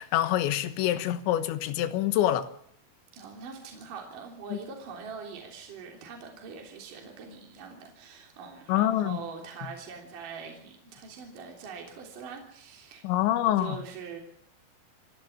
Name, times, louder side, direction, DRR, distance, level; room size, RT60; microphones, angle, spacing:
voice 1, 0.0-2.5 4.5-4.6 8.7-9.2 13.0-13.8, left 12 dB, 80° left, 3.5 m, -26 dB
voice 2, 3.1-14.2, right 5 dB, 50° right, 4.6 m, -43 dB
28.5 x 11.5 x 8.8 m
omnidirectional pair, 5.4 m